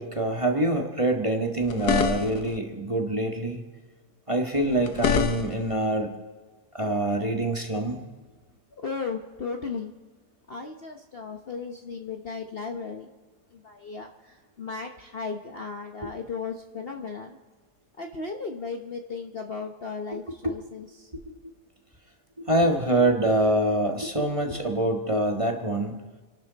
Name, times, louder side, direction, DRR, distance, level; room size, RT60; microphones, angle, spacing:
voice 1, 0.0-3.6 4.3-6.1 6.7-8.0 20.4-20.5 21.3-21.4 22.4-26.0, right 1 dB, 20° right, 2 dB, 1.6 m, -25 dB
sound 1, 1.6-2.6 4.6-5.7, left 8 dB, 75° left, 1.5 m, -27 dB
voice 2, 8.8-9.9 10.5-13.1 13.5-17.4 18.0-21.1, left 4 dB, 40° left, 3 dB, 1.0 m, -35 dB
29.5 x 12.0 x 4.1 m, 1.3 s
omnidirectional pair, 1.8 m